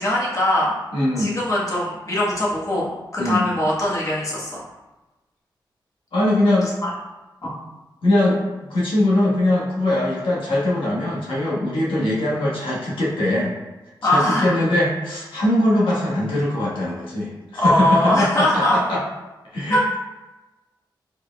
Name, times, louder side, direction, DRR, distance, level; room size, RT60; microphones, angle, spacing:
voice 1, 0.0-0.7 1.2-4.6 6.6-6.9 7.4-7.6 14.0-14.6 17.5-18.8 19.7-19.8, left 1 dB, 40° left, -6 dB, 1.3 m, -21 dB
voice 2, 0.9-1.3 3.2-3.5 6.1-6.7 7.4-7.5 8.0-13.5 14.0-19.0 19.5-20.0, left 1 dB, 80° left, -6 dB, 1.4 m, -21 dB
4.7 x 4.5 x 2.3 m, 1.1 s
cardioid pair, 65°, 9 cm